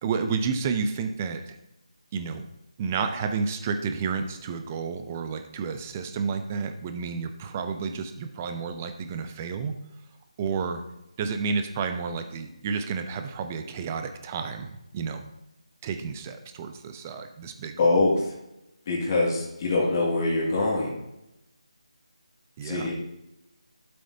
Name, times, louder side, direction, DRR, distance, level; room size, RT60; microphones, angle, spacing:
voice 1, 0.0-1.6 2.1-2.5 2.8-9.8 10.4-10.8 11.2-15.3 15.8-17.9 22.6-22.9, right 5 dB, 20° right, 7 dB, 0.6 m, -31 dB
voice 2, 17.8-18.3 18.9-20.9 22.6-22.9, left 2 dB, 30° left, -3 dB, 2.2 m, -24 dB
12.5 x 7.7 x 2.8 m, 0.88 s
figure-of-eight pair, 165°, 4 cm